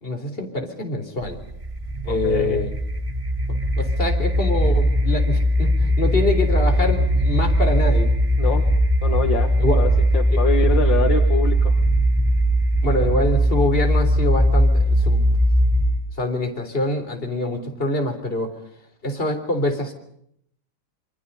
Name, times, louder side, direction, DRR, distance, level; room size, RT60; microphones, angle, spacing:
voice 1, 0.0-1.4 2.0-2.7 3.5-8.1 9.6-9.8 10.3-10.4 12.8-15.4 16.2-18.5 19.0-19.9, left 1 dB, 25° left, 4 dB, 3.8 m, -25 dB
sound 1, 1.2-16.1, equal, 30° right, 0.6 m, -19 dB
voice 2, 2.1-2.6 8.4-8.7 9.0-11.8, left 6 dB, 60° left, 6 dB, 2.2 m, -25 dB
27.5 x 24.0 x 5.5 m, 0.71 s
omnidirectional pair, 2.3 m